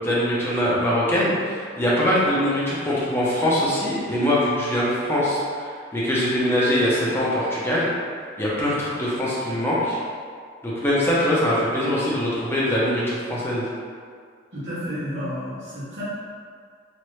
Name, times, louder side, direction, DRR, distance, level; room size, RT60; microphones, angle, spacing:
voice 1, 0.0-7.9 8.4-10.0 10.6-13.7, equal, 10° left, -8 dB, 0.7 m, -22 dB
voice 2, 14.5-16.0, equal, 70° right, -14 dB, 1.2 m, -31 dB
3.0 x 2.5 x 3.1 m, 2.1 s
head